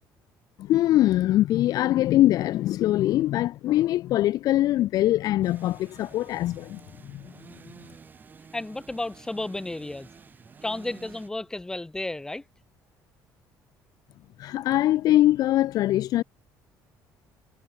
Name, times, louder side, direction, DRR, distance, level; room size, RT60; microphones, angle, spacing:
voice 1, 0.6-6.8 7.1-7.2 14.4-16.2, left 14 dB, 60° left, 0.6 m, -22 dB
sound 1, 5.4-11.3, right 5 dB, 25° right, 4.2 m, -50 dB
voice 2, 8.5-10.1 10.6-12.4, left 2 dB, 10° left, 2.5 m, -32 dB
cardioid pair, 150°, 7 cm